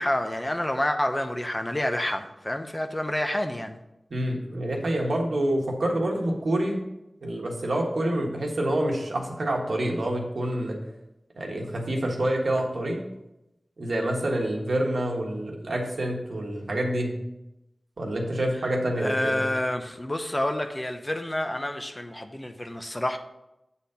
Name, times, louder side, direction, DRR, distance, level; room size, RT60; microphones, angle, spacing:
voice 1, 0.0-3.8 19.0-23.2, left 1 dB, 25° left, 6 dB, 0.7 m, -28 dB
voice 2, 4.1-6.8 7.2-10.7 11.4-13.0 13.8-17.1 18.0-19.4, right 1 dB, 85° right, 0 dB, 1.5 m, -27 dB
8.2 x 4.2 x 5.6 m, 0.91 s
wide cardioid pair, 75°, 0 cm